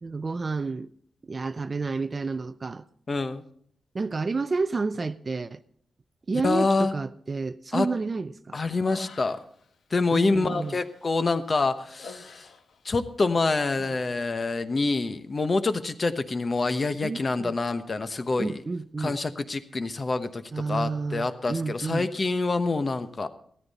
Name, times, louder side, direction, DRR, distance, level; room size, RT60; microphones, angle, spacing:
voice 1, 0.0-0.9 1.2-2.8 3.9-5.6 6.3-8.6 10.1-10.8 17.0-17.5 18.4-19.2 20.5-22.1, right 4 dB, 30° right, 0.5 m, -30 dB
voice 2, 3.1-3.5 6.4-6.9 7.7-7.9 8.5-9.4 9.9-12.5 12.8-18.6 19.0-23.3, left 3 dB, 30° left, 1.0 m, -26 dB
Human voice, 8.6-9.6 10.0-13.0 13.3-14.1, left 5 dB, 85° left, 1.7 m, -48 dB
16.0 x 13.5 x 4.1 m
wide cardioid pair, 145°, 0 cm